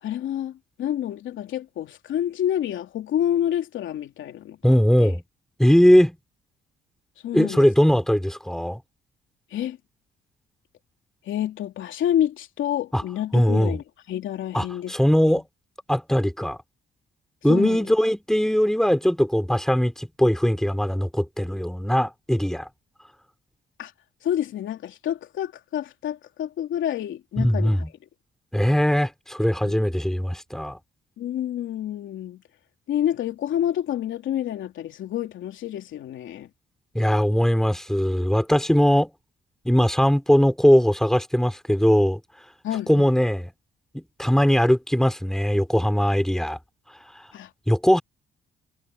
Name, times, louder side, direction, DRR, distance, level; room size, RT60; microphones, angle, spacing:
voice 1, 0.0-5.1 7.2-7.7 9.5-9.8 11.3-15.0 15.2-15.4 17.5-17.8 23.8-23.9 24.2-27.8 29.6-29.8 31.2-32.4 32.9-36.5 42.6-43.2 47.3-47.5, left 11 dB, 75° left, 3.1 m, -28 dB
voice 2, 4.6-5.2 5.6-6.2 7.3-8.8 12.9-13.0 13.3-13.7 14.5-15.4 15.9-16.6 17.4-22.7 27.4-27.9 28.5-30.8 37.0-39.1 39.7-42.2 42.9-43.5 44.2-46.6 47.7-48.0, equal, ahead, 3.7 m, -20 dB
cardioid pair, 90°, 20 cm